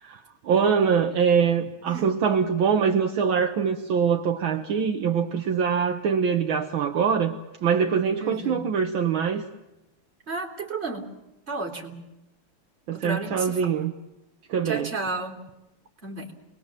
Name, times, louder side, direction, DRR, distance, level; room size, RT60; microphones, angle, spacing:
voice 1, 0.0-7.4 7.6-9.4 12.9-13.9 14.5-14.9, right 6 dB, 65° right, 1.9 m, -23 dB
voice 2, 8.2-8.6 10.3-11.0 11.5-12.0 12.9-13.6 14.6-15.4 16.0-16.3, right 3 dB, 30° right, 3.6 m, -32 dB
29.0 x 21.5 x 7.5 m
omnidirectional pair, 2.4 m